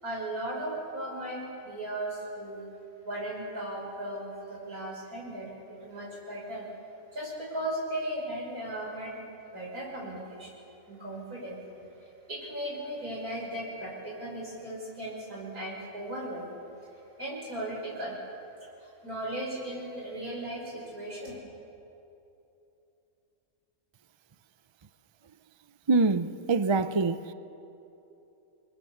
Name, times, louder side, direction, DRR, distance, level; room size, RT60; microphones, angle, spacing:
voice 1, 0.0-2.6 3.0-5.5 5.8-6.7 7.1-10.5 10.9-16.4 17.2-18.2 18.8-21.4, right 1 dB, 85° right, 6.6 m, -37 dB
voice 2, 25.9-27.3, right 3 dB, 35° right, 0.4 m, -25 dB
29.0 x 21.5 x 7.3 m
omnidirectional pair, 1.5 m